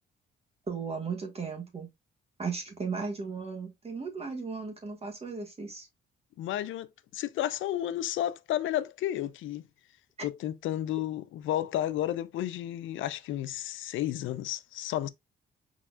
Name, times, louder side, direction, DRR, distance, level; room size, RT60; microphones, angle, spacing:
voice 1, 0.7-1.9 2.4-5.9, right 5 dB, 30° right, 1.4 m, -36 dB
voice 2, 6.4-9.6 10.2-15.1, left 12 dB, 75° left, 0.5 m, -32 dB
4.7 x 4.1 x 2.3 m
cardioid pair, 90°, 20 cm